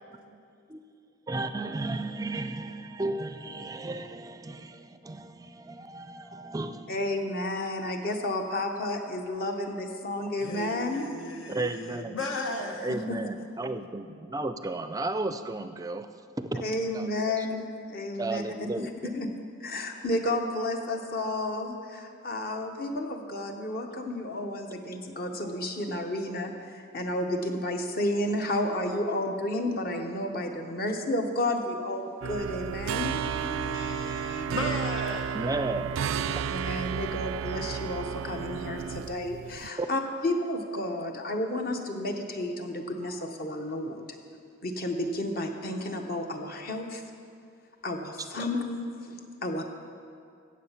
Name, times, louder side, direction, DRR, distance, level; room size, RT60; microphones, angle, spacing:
voice 1, 0.1-0.4 0.7-0.8 1.3-7.0 11.5-12.2 12.8-16.1 16.4-16.6 16.9-17.1 17.4-17.5 18.2-19.1 35.3-36.0 39.8-39.9 48.3-48.4, right 2 dB, 15° right, 10 dB, 0.4 m, -34 dB
voice 2, 6.9-11.1 13.1-13.2 16.6-18.4 18.7-19.3 19.6-33.2 36.1-44.0 44.6-47.0 47.8-49.7, left 1 dB, 45° left, 4 dB, 1.0 m, -31 dB
voice 3, 10.4-13.1 32.8-35.5, left 1 dB, 80° left, 3 dB, 1.1 m, -36 dB
sound 1, 32.2-39.7, right 8 dB, 85° right, 0.3 m, -32 dB
16.0 x 7.3 x 5.7 m, 2.4 s
head